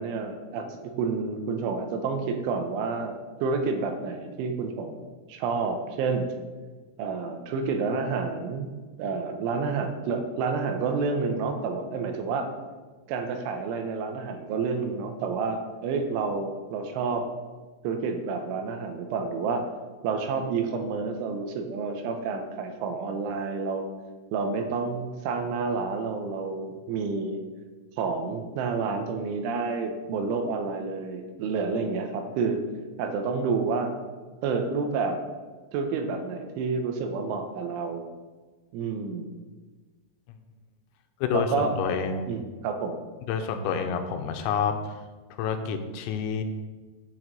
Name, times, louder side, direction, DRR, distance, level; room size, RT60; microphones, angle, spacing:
voice 1, 0.0-6.3 7.0-8.7 9.0-12.5 13.1-17.3 17.8-19.7 20.0-23.9 24.3-27.4 28.0-32.6 33.0-33.9 34.4-35.2 35.7-38.0 38.7-39.3 41.3-41.7 42.3-43.0, right 4 dB, 80° right, 5 dB, 3.2 m, -29 dB
voice 2, 41.2-42.3 43.3-45.0 45.4-46.4, left 6 dB, 85° left, 7 dB, 3.5 m, -28 dB
8.9 x 6.3 x 7.4 m, 1.3 s
omnidirectional pair, 5.9 m